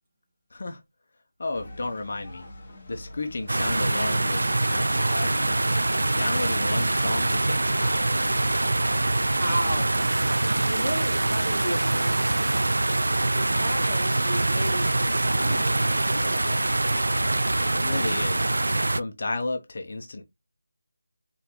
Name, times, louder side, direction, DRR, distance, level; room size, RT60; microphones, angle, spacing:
voice 1, 1.4-2.4 2.9-5.8 6.0-8.4 17.7-18.5 18.9-20.2, left 2 dB, 35° left, 0.7 m, -33 dB
sound 1, 1.5-18.9, left 1 dB, 15° left, 1.6 m, -45 dB
sound 2, 3.5-19.0, right 2 dB, 75° right, 0.3 m, -24 dB
voice 2, 9.4-10.3 10.7-12.7 13.4-16.6, right 1 dB, 15° right, 1.0 m, -34 dB
3.8 x 3.8 x 3.0 m
figure-of-eight pair, 180°, 0 cm